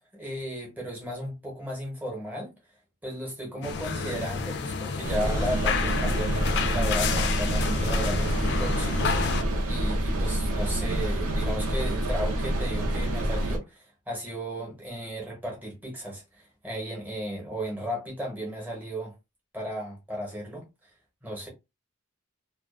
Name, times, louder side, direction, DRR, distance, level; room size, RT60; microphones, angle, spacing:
voice 1, 0.0-2.5 3.0-19.1 19.5-20.7 21.2-21.5, equal, 10° right, 0.8 m, -35 dB
sound 1, 3.6-9.4, left 5 dB, 50° left, 0.3 m, -30 dB
sound 2, 5.0-13.6, right 1 dB, 80° right, 0.7 m, -27 dB
2.4 x 2.2 x 2.4 m
head